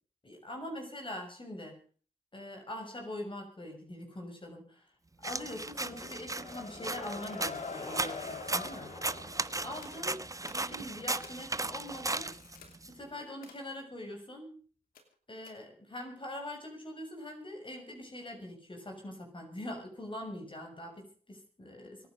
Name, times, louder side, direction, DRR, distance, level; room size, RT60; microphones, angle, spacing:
voice 1, 0.2-1.8 2.3-4.9 5.2-8.9 9.6-10.2 10.4-12.3 12.9-14.6 15.3-22.1, left 1 dB, 35° left, 2 dB, 6.7 m, -43 dB
sound 1, 5.2-12.9, right 2 dB, 25° right, 1.1 m, -37 dB
sound 2, 5.9-10.4, left 4 dB, 60° left, 2.7 m, -44 dB
sound 3, 6.9-7.1 7.4-7.6 8.0-8.2 8.5-8.7 9.0-9.2 9.7-10.0 10.4-10.6 11.2-11.4 11.7-12.8 13.3-13.7 14.9-15.2 15.4-15.5, left 6 dB, 90° left, 2.8 m, -56 dB
25.0 x 9.8 x 5.3 m, 0.43 s
supercardioid pair, 40°, 14 cm